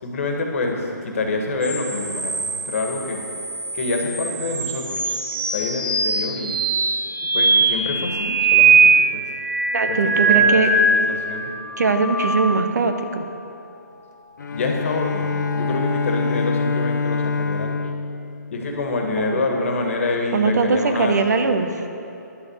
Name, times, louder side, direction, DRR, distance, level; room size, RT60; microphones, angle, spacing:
voice 1, 0.0-3.2 3.7-5.2 5.5-6.6 7.3-9.3 9.9-11.5 14.5-17.8 18.5-21.1, left 2 dB, 45° left, 2 dB, 1.7 m, -26 dB
sound 1, 1.6-11.2 11.6-13.0 14.8-16.0, right 4 dB, 80° right, 2.9 m, -21 dB
voice 2, 9.7-10.7 11.8-13.2 19.2-19.4 20.3-21.7, right 4 dB, 60° right, 7 dB, 1.0 m, -20 dB
Bowed string instrument, 14.4-19.2, left 4 dB, 70° left, 0.8 m, -25 dB
11.0 x 7.0 x 8.0 m, 2.8 s
hypercardioid pair, 165°, 10 cm